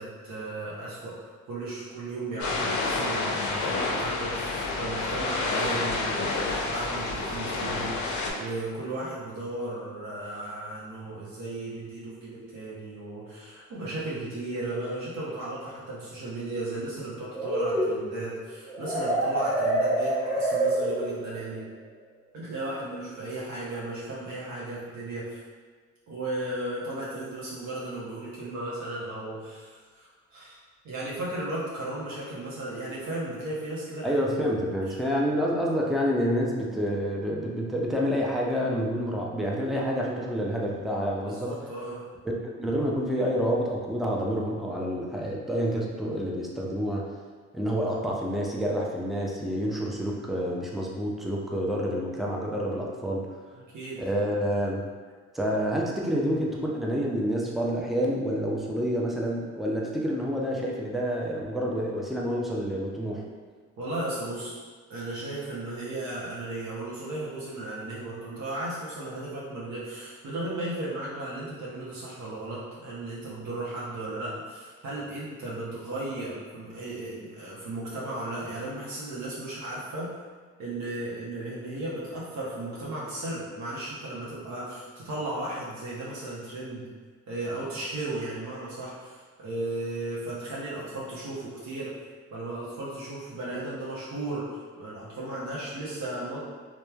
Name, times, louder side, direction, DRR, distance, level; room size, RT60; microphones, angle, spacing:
voice 1, 0.0-21.7 22.3-25.4 26.1-30.6 30.8-34.2 34.9-35.4 41.2-42.0 53.6-54.1 63.8-64.6 64.9-80.2 80.6-86.9 87.3-91.9 92.3-96.4, right 2 dB, 70° right, -7 dB, 0.7 m, -35 dB
sound 1, 2.4-8.3, left 3 dB, 75° left, 0.5 m, -29 dB
sound 2, 17.3-21.4, right 1 dB, 25° right, 0.9 m, -27 dB
voice 2, 34.0-41.5 42.4-47.1 47.5-53.3 54.0-54.8 55.3-63.2, equal, ahead, -3 dB, 0.4 m, -28 dB
2.9 x 2.1 x 2.3 m, 1.5 s
cardioid pair, 90°, 30 cm